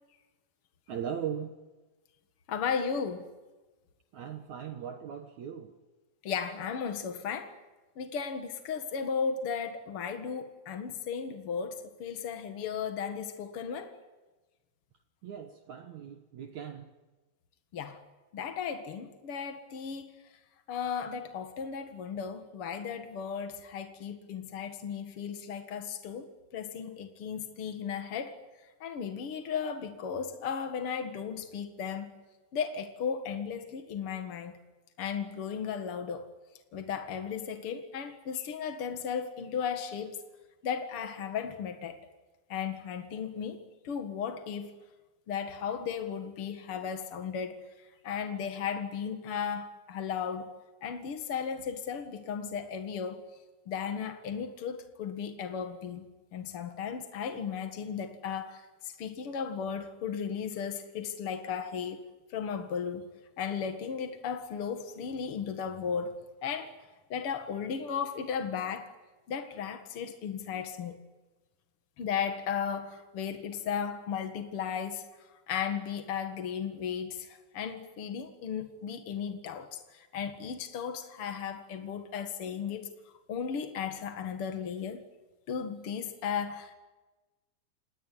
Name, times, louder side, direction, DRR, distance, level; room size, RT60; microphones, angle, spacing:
voice 1, 0.9-1.5 4.1-5.7 15.2-16.9, right 8 dB, 70° right, 1.7 m, -39 dB
voice 2, 2.5-3.3 6.2-7.5 7.9-14.0 17.7-18.0 18.3-20.1 20.7-28.4 28.8-32.1 32.5-34.6 35.0-36.3 36.7-40.2 40.6-42.0 42.5-44.8 45.3-47.6 48.0-50.5 50.8-53.2 53.7-56.1 56.3-62.0 62.3-63.1 63.4-66.1 66.4-66.7 67.1-68.9 69.3-71.0 72.0-75.0 75.5-82.9 83.3-85.0 85.5-86.7, left 7 dB, 65° left, 1.3 m, -35 dB
27.5 x 19.5 x 9.8 m
omnidirectional pair, 5.1 m